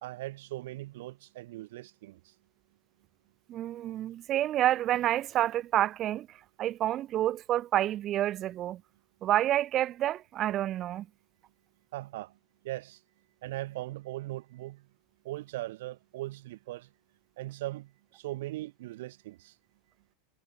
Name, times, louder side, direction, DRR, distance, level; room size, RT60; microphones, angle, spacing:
voice 1, 0.0-2.3 11.9-12.3 12.6-13.0 13.4-14.8 15.2-16.9 17.4-19.6, right 17 dB, 60° right, 1.6 m, -39 dB
voice 2, 3.5-8.8 9.2-11.1, right 13 dB, 25° right, 1.1 m, -29 dB
supercardioid pair, 180°, 0 cm